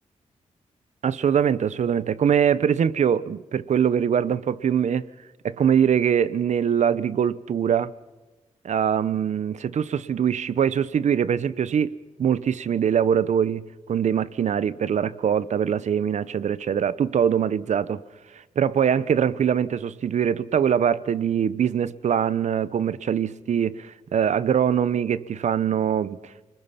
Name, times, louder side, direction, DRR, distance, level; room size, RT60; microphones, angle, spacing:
voice 1, 1.0-5.1 5.4-7.9 8.6-18.0 18.3-26.5, right 8 dB, 65° right, 0.8 m, -23 dB
29.0 x 21.0 x 5.7 m
cardioid pair, 90°, 13 cm